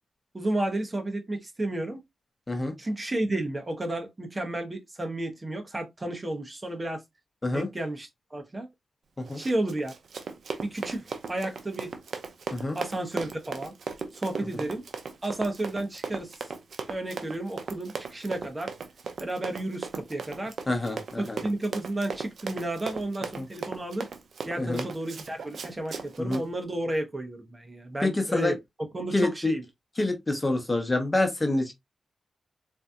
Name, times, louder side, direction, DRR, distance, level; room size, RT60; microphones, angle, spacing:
voice 1, 0.3-2.0 2.8-7.0 7.5-8.7 9.4-9.9 10.6-11.9 12.7-13.7 14.1-14.8 15.2-16.4 16.9-18.7 19.2-20.5 21.2-24.1 24.4-28.6 28.9-29.6, right 1 dB, 30° right, 1.0 m, -32 dB
Run, 9.2-26.4, right 5 dB, 75° right, 0.6 m, -37 dB
voice 2, 20.7-21.4 23.4-23.5 24.6-24.8 26.2-26.4 28.0-28.5 29.1-29.5 30.0-31.7, left 2 dB, 25° left, 0.9 m, -27 dB
3.9 x 2.7 x 2.4 m
cardioid pair, 60°, 0 cm